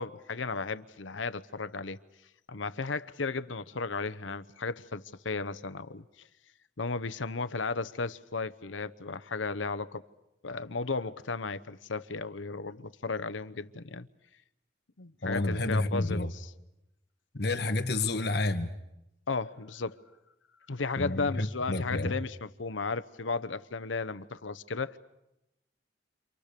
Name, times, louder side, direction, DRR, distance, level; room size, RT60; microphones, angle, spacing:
voice 1, 0.0-2.0 2.5-6.0 6.8-10.0 10.4-14.1 15.0-16.5 19.3-20.0 20.7-25.0, left 4 dB, 85° left, 0.9 m, -34 dB
voice 2, 15.2-16.3 17.4-18.7 21.0-22.1, left 2 dB, 55° left, 1.6 m, -29 dB
30.0 x 27.0 x 6.8 m
head